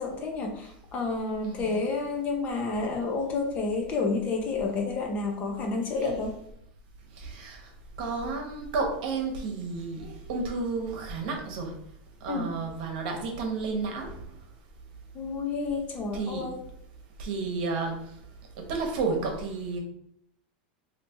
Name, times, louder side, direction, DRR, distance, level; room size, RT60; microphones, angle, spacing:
voice 1, 0.0-6.4 12.3-12.5 15.1-16.6, left 4 dB, 30° left, 2 dB, 0.7 m, -30 dB
voice 2, 1.4-1.8 5.9-6.1 7.1-7.7 8.0-11.7 12.2-14.2 16.1-16.5 17.2-18.2 18.6-19.8, right 4 dB, 60° right, 2 dB, 1.0 m, -32 dB
3.3 x 2.8 x 2.8 m, 0.70 s
supercardioid pair, 145°, 5 cm